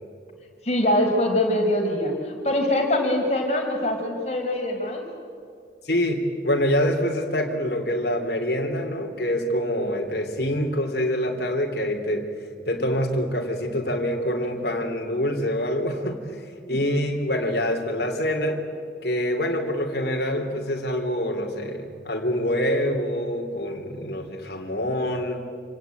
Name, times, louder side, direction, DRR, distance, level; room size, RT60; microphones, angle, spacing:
voice 1, 0.6-5.0 16.7-16.8, left 1 dB, 35° left, 1 dB, 5.0 m, -23 dB
voice 2, 5.8-12.3 12.7-16.2 16.7-18.6 19.0-25.4, equal, 55° left, 2 dB, 3.2 m, -25 dB
27.5 x 18.0 x 9.2 m, 2.3 s
head